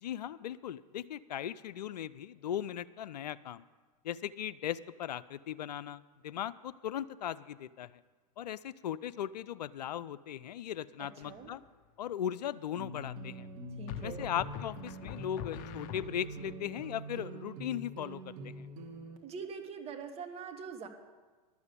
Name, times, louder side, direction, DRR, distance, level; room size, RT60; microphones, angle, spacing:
voice 1, 0.0-3.6 4.0-8.0 8.4-11.6 12.0-13.5 14.0-18.7, left 10 dB, 85° left, 17 dB, 0.5 m, -38 dB
voice 2, 11.0-11.5 13.8-14.3 19.2-20.9, right 6 dB, 30° right, 5 dB, 1.5 m, -43 dB
sound 1, 11.2-11.7 13.9-16.5, left 12 dB, 45° left, 0.7 m, -45 dB
sound 2, 12.8-19.2, right 1 dB, 45° right, 1.8 m, -45 dB
12.0 x 7.2 x 8.2 m, 1.4 s
hypercardioid pair, 110°, 21 cm